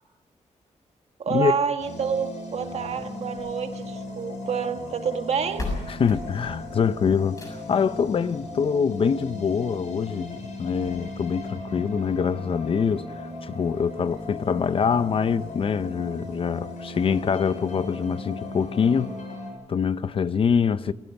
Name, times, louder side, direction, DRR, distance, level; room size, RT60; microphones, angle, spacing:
voice 1, 1.2-5.7, right 7 dB, 60° right, 1.6 m, -28 dB
sound 1, 1.8-19.5, left 2 dB, 75° left, 7.9 m, -37 dB
sound 2, 3.2-4.4 5.2-5.3 5.6-7.9 9.2-9.3 9.8-9.9 10.1-10.2 10.8-10.9, left 2 dB, 25° left, 6.7 m, -36 dB
voice 2, 5.9-19.2 19.7-20.9, left 6 dB, 45° left, 0.6 m, -24 dB
28.0 x 16.5 x 5.9 m
wide cardioid pair, 175°, 12 cm